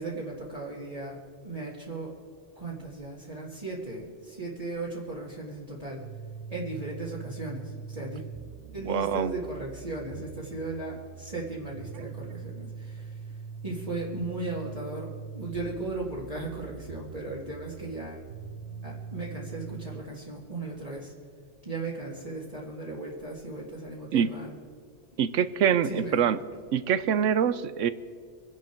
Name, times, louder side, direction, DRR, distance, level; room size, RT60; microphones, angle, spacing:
voice 1, 0.0-2.1 2.6-6.0 6.5-8.2 8.7-13.2 13.6-18.2 18.8-21.1 21.6-24.5 25.8-26.2, right 2 dB, 30° right, -6 dB, 2.2 m, -37 dB
sound 1, 6.0-20.0, right 6 dB, 65° right, 1.1 m, -42 dB
voice 2, 8.9-9.3 12.0-12.1 24.1-24.3 25.2-26.4 26.7-27.9, right 8 dB, 85° right, 14 dB, 1.1 m, -25 dB
25.5 x 10.5 x 4.5 m, 2.1 s
omnidirectional pair, 1.2 m